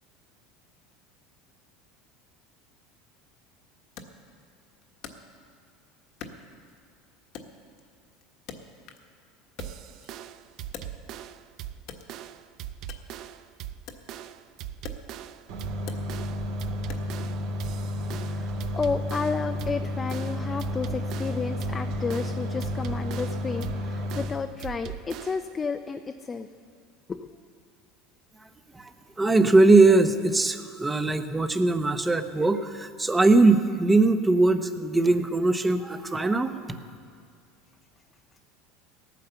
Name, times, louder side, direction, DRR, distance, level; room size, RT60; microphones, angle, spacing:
Wood, 4.0-5.7 6.2-7.0 7.3-9.2 9.4-11.4 11.8-17.3, left 6 dB, 60° left, 1.4 m, -46 dB
sound 1, 9.6-25.6, right 11 dB, 55° right, 0.6 m, -41 dB
sound 2, 15.5-24.2, left 1 dB, 70° right, 2.9 m, -32 dB
voice 1, 18.0-26.5 27.1-27.4, left 5 dB, 20° left, 8 dB, 0.6 m, -32 dB
voice 2, 29.2-36.5, right 3 dB, 15° right, 9 dB, 0.9 m, -21 dB
16.5 x 9.3 x 6.9 m, 2.2 s
supercardioid pair, 120°, 0 cm